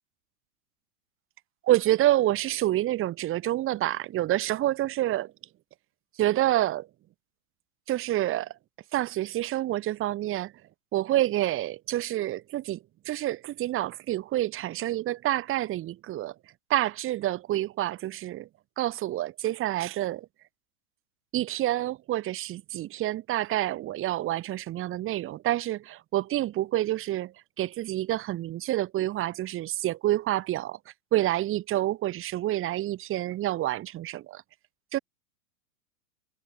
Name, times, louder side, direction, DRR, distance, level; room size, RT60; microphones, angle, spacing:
voice 1, 1.6-5.3 6.2-6.9 7.9-8.5 8.9-10.5 10.9-12.8 13.1-16.3 16.7-18.5 18.8-20.3 21.3-30.8 31.1-34.4 34.9-35.0, right 14 dB, 30° right, 4.1 m, -28 dB
hypercardioid pair, 110°, 43 cm